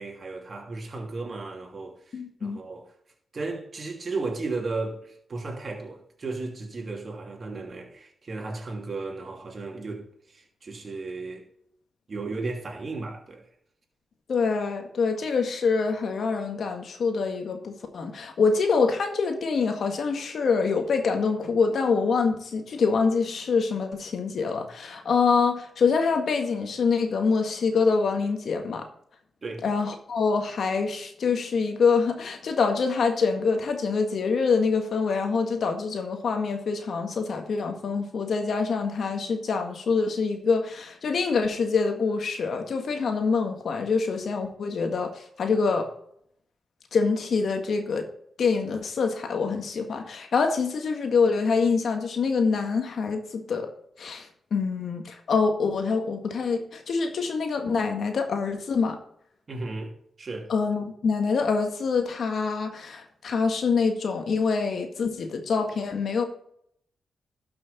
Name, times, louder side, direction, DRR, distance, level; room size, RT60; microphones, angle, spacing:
voice 1, 0.0-2.9 3.3-11.5 12.1-13.5 29.4-29.6 59.5-59.9 60.2-60.5, right 3 dB, 50° right, 2.7 m, -35 dB
voice 2, 2.1-2.6 14.3-28.9 29.6-45.9 46.9-48.1 48.4-53.7 54.0-59.0 60.5-66.2, left 5 dB, 70° left, 1.8 m, -25 dB
12.5 x 6.2 x 4.2 m
cardioid pair, 50°, 0 cm